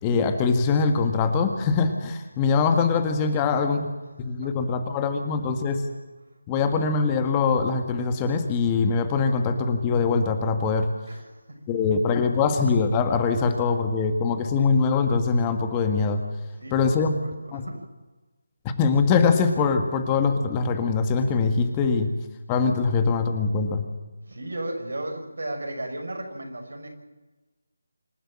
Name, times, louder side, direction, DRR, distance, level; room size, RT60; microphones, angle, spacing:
voice 1, 0.0-3.9 4.2-5.8 6.5-10.9 11.7-16.2 16.7-17.1 17.5-17.6 18.8-22.1 22.5-23.8, left 5 dB, 20° left, 6 dB, 1.7 m, -23 dB
voice 2, 3.3-3.9 4.4-4.5 11.1-12.0 16.6-17.8 24.3-26.9, right 1 dB, 75° right, 4 dB, 6.0 m, -36 dB
26.5 x 12.5 x 8.8 m, 1.2 s
figure-of-eight pair, 160°, 0 cm